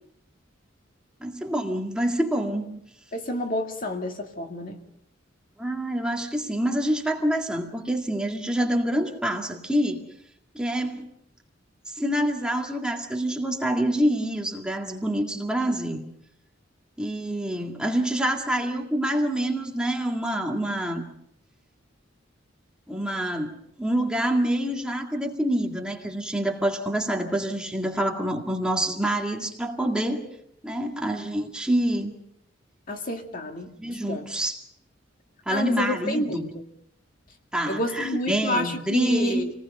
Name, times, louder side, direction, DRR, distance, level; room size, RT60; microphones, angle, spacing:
voice 1, 1.2-2.8 5.6-10.0 10.5-11.1 11.9-16.0 17.0-21.1 22.9-30.2 30.6-32.1 33.8-34.6 35.5-36.5 37.5-39.5, right 1 dB, 5° right, 1 dB, 2.1 m, -26 dB
voice 2, 3.1-4.8 32.9-34.2 35.5-36.6 37.7-39.5, left 1 dB, 45° left, 4 dB, 2.1 m, -29 dB
28.0 x 19.5 x 5.5 m, 0.72 s
head